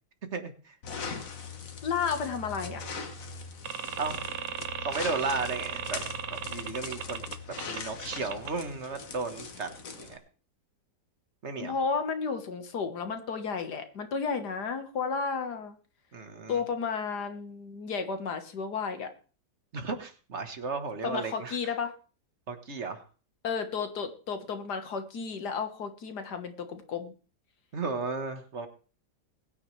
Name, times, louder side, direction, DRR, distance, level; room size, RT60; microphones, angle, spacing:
voice 1, 0.3-0.8 4.0-4.2 4.8-6.0 6.3-7.2 7.6-9.7 10.0-10.2 11.4-11.7 16.1-16.6 19.7-21.7 22.5-23.0 27.7-28.7, right 4 dB, 45° right, 8 dB, 1.6 m, -34 dB
sound 1, 0.8-10.2, left 5 dB, 55° left, 1.7 m, -41 dB
voice 2, 1.8-2.9 11.6-15.8 16.5-19.1 21.0-21.9 23.4-27.1, left 5 dB, 70° left, 7 dB, 2.0 m, -32 dB
sound 2, 3.6-7.8 8.1-8.5, right 8 dB, 60° right, 1.2 m, -36 dB
21.5 x 9.6 x 3.3 m, 0.37 s
omnidirectional pair, 1.8 m